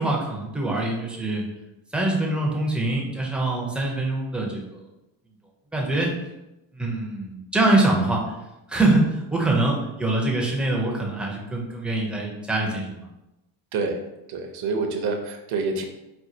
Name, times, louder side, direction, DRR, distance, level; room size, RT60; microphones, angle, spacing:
voice 1, 0.0-1.4 1.9-4.8 5.7-6.1 6.7-8.4 8.7-13.0, right 2 dB, ahead, -2 dB, 0.4 m, -24 dB
voice 2, 14.3-15.8, right 4 dB, 55° right, 4 dB, 0.6 m, -27 dB
4.3 x 2.2 x 2.6 m, 0.94 s
cardioid pair, 135°, 47 cm